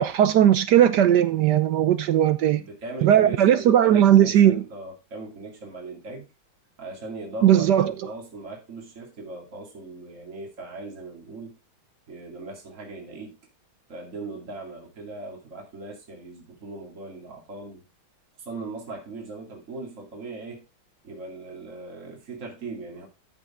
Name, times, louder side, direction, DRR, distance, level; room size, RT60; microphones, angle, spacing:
voice 1, 0.0-2.6 3.0-4.6 7.4-7.9, right 10 dB, 70° right, 1.0 m, -18 dB
voice 2, 2.5-6.2 6.8-11.5 12.1-13.4 13.9-17.8 18.4-20.6 21.0-23.1, right 3 dB, 35° right, 2.9 m, -39 dB
13.5 x 5.5 x 3.6 m
omnidirectional pair, 2.3 m